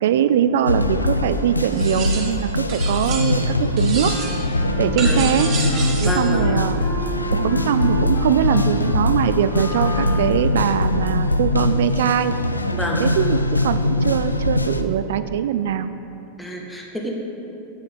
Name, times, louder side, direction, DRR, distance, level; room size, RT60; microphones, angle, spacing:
voice 1, 0.0-4.2 4.8-5.6 6.0-6.8 7.3-12.4 13.0-15.9, right 9 dB, 55° right, 12 dB, 0.3 m, -21 dB
sound 1, 0.7-14.8, left 2 dB, 85° left, 0.3 m, -22 dB
sound 2, 1.7-2.4 2.7-3.5 3.8-4.5 5.0-6.3, right 4 dB, 35° right, 1.0 m, -30 dB
Wind instrument woodwind instrument, 3.9-10.6, left 2 dB, 65° left, 1.7 m, -32 dB
voice 2, 5.0-5.3 6.0-6.5 12.7-13.0 16.4-17.2, equal, 5° left, -1 dB, 1.2 m, -28 dB
9.0 x 5.6 x 4.8 m, 2.9 s
figure-of-eight pair, 90°, 0 cm